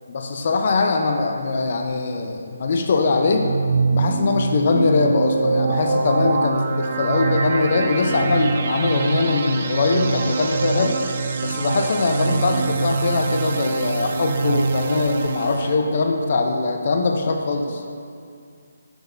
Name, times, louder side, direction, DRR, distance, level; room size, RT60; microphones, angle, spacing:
voice 1, 0.1-3.5 3.9-10.9 11.4-17.8, left 3 dB, 50° left, 3 dB, 0.5 m, -21 dB
sound 1, 3.2-15.8, right 4 dB, 45° right, 0.4 m, -24 dB
6.6 x 6.1 x 2.6 m, 2.3 s
figure-of-eight pair, 150°, 0 cm